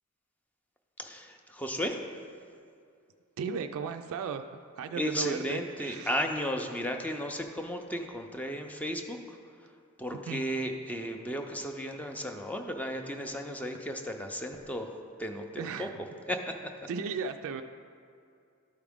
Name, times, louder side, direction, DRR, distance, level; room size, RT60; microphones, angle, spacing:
voice 1, 1.0-2.0 4.9-9.4 10.0-14.9 15.2-15.9 16.3-16.7, equal, 5° left, 4 dB, 0.5 m, -34 dB
voice 2, 3.4-6.2 10.3-10.4 15.6-15.9 16.9-17.6, right 6 dB, 65° right, 7 dB, 0.3 m, -36 dB
12.0 x 4.9 x 3.5 m, 2.4 s
head